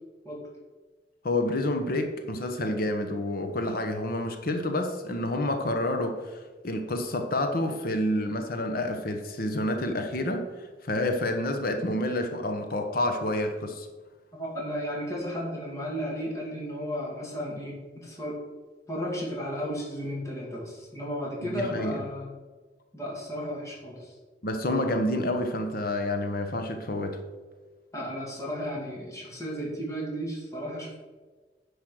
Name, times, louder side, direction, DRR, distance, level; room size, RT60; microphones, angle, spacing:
voice 1, 1.2-13.9 21.4-22.0 24.4-27.2, left 1 dB, 55° left, 6 dB, 1.0 m, -29 dB
voice 2, 14.3-18.4 18.9-22.3 22.9-24.1 27.9-31.0, equal, 20° left, -4 dB, 2.5 m, -34 dB
10.0 x 5.2 x 6.4 m, 1.3 s
head